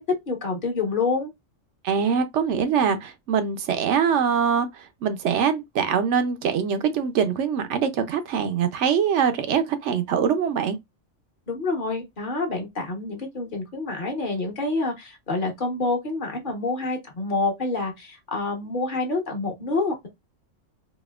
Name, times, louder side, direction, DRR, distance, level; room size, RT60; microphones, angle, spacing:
voice 1, 0.3-1.3 11.5-20.1, left 3 dB, 40° left, 1.1 m, -27 dB
voice 2, 1.8-10.8, right 7 dB, 70° right, 0.8 m, -23 dB
4.2 x 2.7 x 2.3 m
omnidirectional pair, 1.4 m